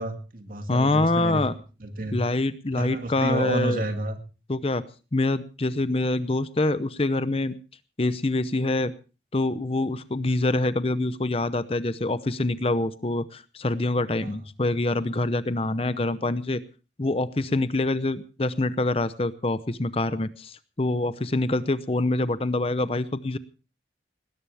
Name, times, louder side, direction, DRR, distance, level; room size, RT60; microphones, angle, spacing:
voice 1, 0.0-1.4 1.8-2.2 2.7-4.2 14.2-14.4, right 1 dB, 50° right, 7 dB, 2.2 m, -30 dB
voice 2, 0.7-1.5 2.1-3.8 4.5-4.8 5.1-7.6 8.0-8.9 9.3-16.6 17.0-23.4, left 2 dB, 35° left, 14 dB, 0.7 m, -25 dB
19.5 x 17.5 x 3.4 m, 0.34 s
head